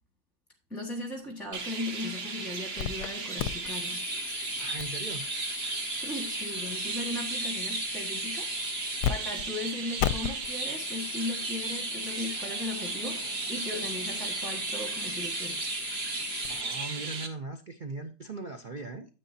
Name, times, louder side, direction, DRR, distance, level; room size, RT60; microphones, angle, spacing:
voice 1, 0.7-4.1 5.9-8.5 9.1-15.6, left 2 dB, ahead, 1.3 m, -37 dB
Chirp tweet, 1.5-17.3, right 4 dB, 40° right, 1.1 m, -35 dB
sound 1, 2.8-3.1 3.4-9.1 9.4-9.5 10.0-16.6, left 11 dB, 70° left, 1.1 m, -37 dB
voice 2, 4.6-5.3 16.5-19.1, right 3 dB, 60° right, 0.5 m, -39 dB
9.8 x 8.2 x 2.7 m
omnidirectional pair, 1.9 m